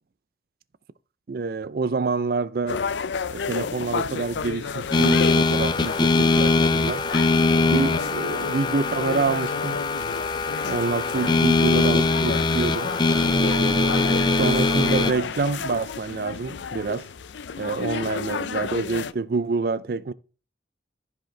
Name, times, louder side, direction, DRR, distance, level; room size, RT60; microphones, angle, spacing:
voice 1, 1.3-2.8 3.3-7.1 7.7-9.8 10.7-12.9 13.4-17.1 17.6-20.1, right 4 dB, 55° right, 0.4 m, -27 dB
sound 1, 2.7-19.1, left 5 dB, 85° left, 0.5 m, -32 dB
sound 2, 4.9-15.1, left 3 dB, 25° left, 0.5 m, -22 dB
14.5 x 5.1 x 3.2 m
head